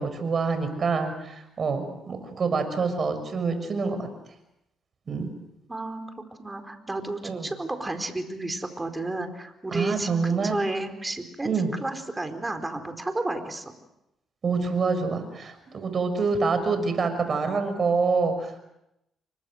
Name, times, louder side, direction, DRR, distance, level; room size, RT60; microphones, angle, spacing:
voice 1, 0.0-4.1 5.1-5.3 7.2-7.5 9.7-10.6 11.4-11.7 14.4-18.6, right 4 dB, 45° right, 8 dB, 6.2 m, -26 dB
voice 2, 5.7-6.0 6.4-11.5 11.8-13.7, right 2 dB, 15° right, 7 dB, 4.4 m, -32 dB
30.0 x 24.5 x 6.5 m, 0.84 s
cardioid pair, 90°, 0 cm